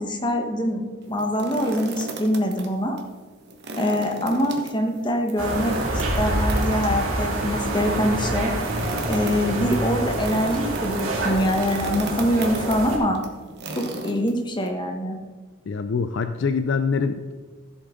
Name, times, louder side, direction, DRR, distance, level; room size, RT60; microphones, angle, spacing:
voice 1, 0.0-3.0 3.8-8.5 9.1-13.2 13.7-15.2, equal, 20° left, 3 dB, 1.2 m, -24 dB
sound 1, 1.0-2.7 3.0-3.1 3.5-14.7, right 2 dB, 50° right, 1.3 m, -36 dB
sound 2, 5.4-13.0, right 1 dB, 75° right, 2.4 m, -26 dB
voice 2, 15.7-17.3, left 5 dB, 55° left, 9 dB, 0.4 m, -24 dB
14.0 x 7.8 x 3.8 m, 1.5 s
head